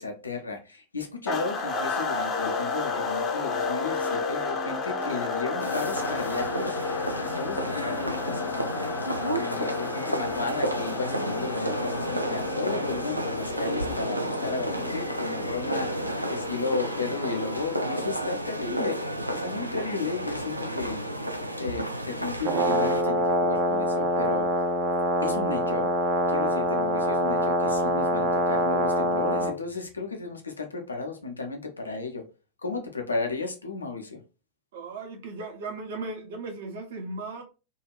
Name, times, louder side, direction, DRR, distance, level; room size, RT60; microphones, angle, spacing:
voice 1, 0.0-8.9 9.3-21.2 21.6-24.5 25.2-25.9 26.3-32.3 32.6-34.2, left 4 dB, 80° left, 0.7 m, -34 dB
sound 1, 1.3-18.0, left 4 dB, 25° left, 0.6 m, -32 dB
sound 2, 5.6-23.0, right 1 dB, 85° right, 0.4 m, -32 dB
Brass instrument, 22.4-29.6, right 1 dB, 35° right, 0.6 m, -25 dB
voice 2, 34.7-37.4, right 3 dB, 55° right, 0.9 m, -36 dB
2.7 x 2.5 x 2.9 m
figure-of-eight pair, 90°, 0 cm